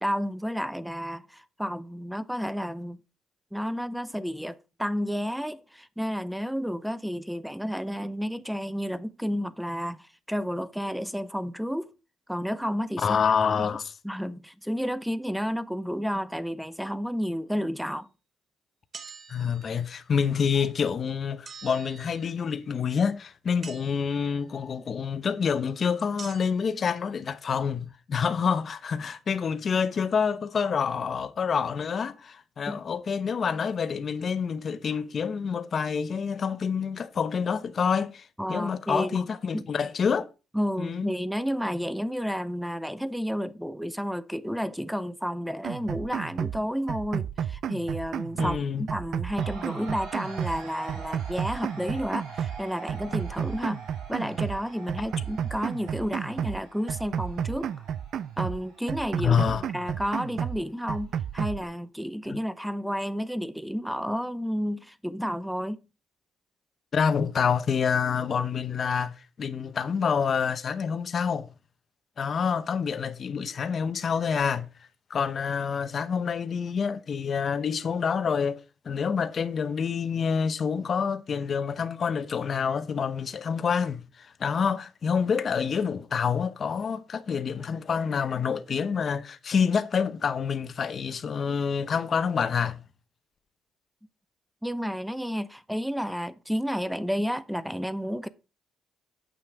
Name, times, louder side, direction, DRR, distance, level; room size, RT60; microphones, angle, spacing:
voice 1, 0.0-3.0 3.5-11.9 12.3-13.2 13.6-13.8 14.0-18.1 32.7-32.8 38.4-39.2 39.5-39.7 40.5-53.8 54.1-57.7 58.4-65.8 94.6-98.3, equal, ahead, 0.6 m, -31 dB
voice 2, 13.0-13.8 19.3-40.3 40.8-41.1 48.4-48.8 59.2-59.6 62.3-62.4 66.9-71.5 72.2-74.7 75.1-78.6 78.8-92.8, left 6 dB, 40° left, 0.8 m, -27 dB
sound 1, 18.9-19.9 21.5-22.6 23.6-24.4 26.2-26.7, right 5 dB, 35° right, 0.8 m, -46 dB
sound 2, 45.6-46.6 46.9-48.6 48.9-50.6 50.9-52.6 52.9-54.6 54.9-56.6 56.9-58.6 58.9-60.6 60.9-61.6, right 9 dB, 60° right, 0.4 m, -32 dB
sound 3, 49.4-61.3, right 3 dB, 85° right, 5.2 m, -46 dB
8.5 x 6.1 x 4.6 m
cardioid pair, 130°, 0 cm